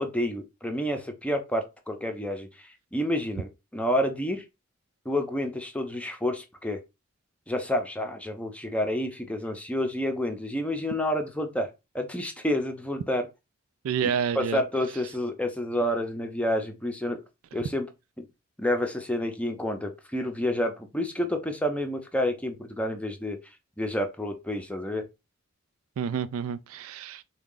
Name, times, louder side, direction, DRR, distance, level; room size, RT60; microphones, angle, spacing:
voice 1, 0.0-4.4 5.1-6.8 7.5-11.7 11.9-13.3 14.4-17.2 17.5-17.9 18.2-18.3 18.6-23.4 23.8-25.1, left 1 dB, 5° left, 0.6 m, -29 dB
voice 2, 13.8-14.6 26.0-27.2, right 7 dB, 70° right, 0.3 m, -29 dB
3.6 x 2.3 x 3.7 m
head